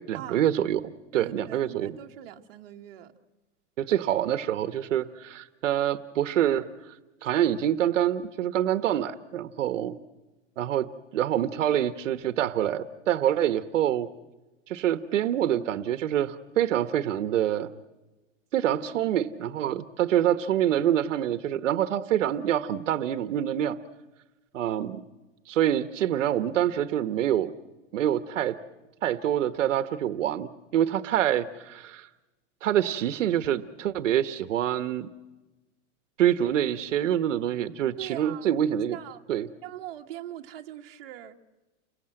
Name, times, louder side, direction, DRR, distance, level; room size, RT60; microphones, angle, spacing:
voice 1, 0.1-0.8 1.1-2.0 3.8-7.0 7.2-9.9 10.6-10.9 11.1-14.1 14.7-17.7 18.5-23.8 24.5-25.0 25.5-27.5 27.9-28.6 29.0-32.1 32.6-35.1 36.2-39.0 39.3-39.5, right 11 dB, 85° right, 1.4 m, -26 dB
voice 2, 1.1-3.1 38.0-38.5 38.9-39.2 39.6-41.4, right 12 dB, 50° right, 1.9 m, -41 dB
30.0 x 23.5 x 7.8 m
supercardioid pair, 170°, 36 cm